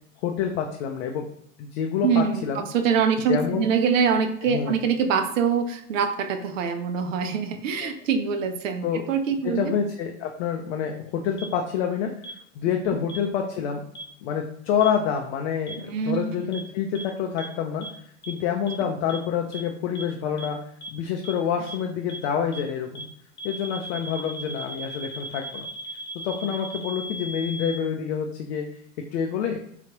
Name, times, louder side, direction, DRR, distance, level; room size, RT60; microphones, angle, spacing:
voice 1, 0.2-1.3 1.6-2.7 3.3-3.7 4.4-4.8 7.8-7.9 8.8-9.0 9.4-13.8 14.2-20.6 20.9-23.1 23.4-25.7 26.2-28.7 29.1-29.6, left 7 dB, 55° left, 2 dB, 0.5 m, -27 dB
voice 2, 2.0-9.7 15.8-16.3, right 6 dB, 75° right, 8 dB, 0.5 m, -24 dB
sound 1, 11.4-11.5 12.2-12.3 13.1-13.2 14.0-14.1 14.8-14.9 15.7-15.8 16.5-16.6 17.0-17.1 17.4-17.5 17.8-17.9 18.2-18.3 18.7-18.8 19.1-19.2 19.5-19.6 20.0-20.1 20.4-20.5 20.8-20.9 21.2-21.3 21.7-21.8 22.1-22.2 22.5-22.6 23.0-23.1 23.4-27.8, right 1 dB, 25° left, 0.9 m, -37 dB
3.3 x 2.4 x 2.8 m, 0.70 s
hypercardioid pair, 80°, 39 cm